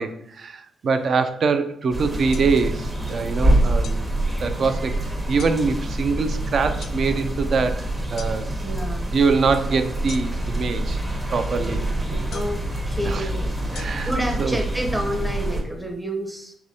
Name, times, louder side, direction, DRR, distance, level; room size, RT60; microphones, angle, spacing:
voice 1, 0.0-4.1 4.4-8.5 9.1-11.0 11.3-11.8 13.0-13.3 13.7-14.1 14.4-14.6, right 4 dB, 55° right, 9 dB, 0.4 m, -24 dB
rain in the evening, 1.9-15.6, right 1 dB, 25° right, 1.0 m, -26 dB
sound 1, 2.3-2.5 3.8-4.0 5.4-5.6 6.8-7.0 8.2-8.3 10.1-10.5 12.3-12.6 13.7-13.8, left 7 dB, 75° left, 0.4 m, -39 dB
voice 2, 8.6-9.1 11.7-16.6, equal, 10° right, 3 dB, 0.7 m, -30 dB
4.8 x 3.4 x 2.7 m, 0.72 s
cardioid pair, 120°, 0 cm